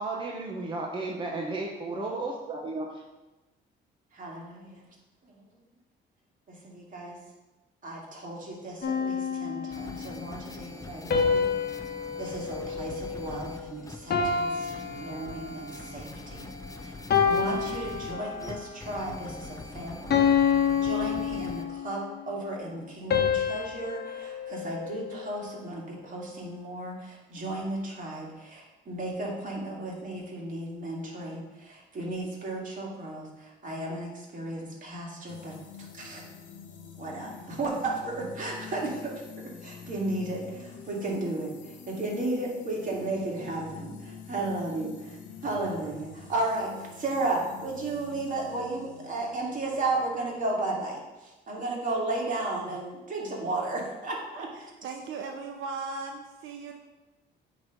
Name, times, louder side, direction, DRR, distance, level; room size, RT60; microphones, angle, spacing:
voice 1, 0.0-3.0, right 2 dB, 25° right, -1 dB, 0.9 m, -33 dB
voice 2, 4.1-4.8 5.3-5.4 6.5-7.2 7.8-11.5 12.2-16.5 17.2-20.3 20.8-35.5 35.9-36.2 37.0-41.5 41.9-45.2 45.4-46.7 47.0-51.0 51.5-54.5, right 2 dB, 40° right, -3 dB, 2.2 m, -34 dB
sound 1, 8.8-10.1 11.1-13.6 14.1-15.8 16.4-16.6 17.1-18.6 19.1-19.4 20.1-22.0 23.1-25.5, left 6 dB, 55° left, 1.1 m, -28 dB
sound 2, 9.7-21.6, left 3 dB, 15° left, 0.5 m, -43 dB
sound 3, 35.3-51.0, left 6 dB, 80° left, 0.9 m, -47 dB
voice 3, 54.5-56.8, right 4 dB, 80° right, 3 dB, 0.6 m, -38 dB
8.1 x 3.1 x 5.1 m, 1.1 s
cardioid pair, 90°, 20 cm